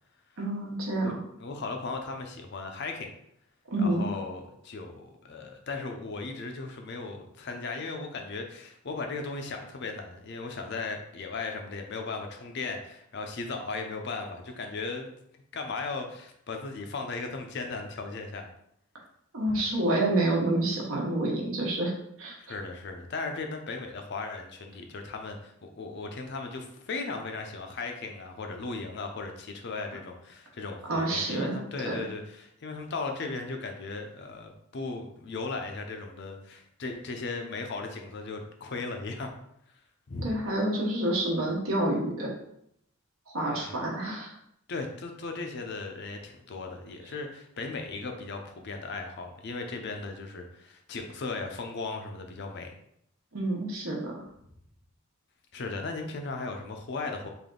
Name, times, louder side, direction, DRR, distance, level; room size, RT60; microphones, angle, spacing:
voice 1, 0.4-1.2 3.7-4.1 19.3-21.9 22.2-22.3 30.9-31.6 31.8-31.9 40.2-42.3 43.3-44.3 53.3-54.1, right 1 dB, 70° right, -2 dB, 1.0 m, -28 dB
voice 2, 1.4-3.1 3.8-15.1 15.5-18.5 19.5-19.6 22.4-39.3 40.1-40.3 43.5-43.8 44.7-52.7 55.5-57.3, left 3 dB, 50° left, 4 dB, 0.5 m, -37 dB
3.4 x 2.5 x 3.7 m, 0.74 s
head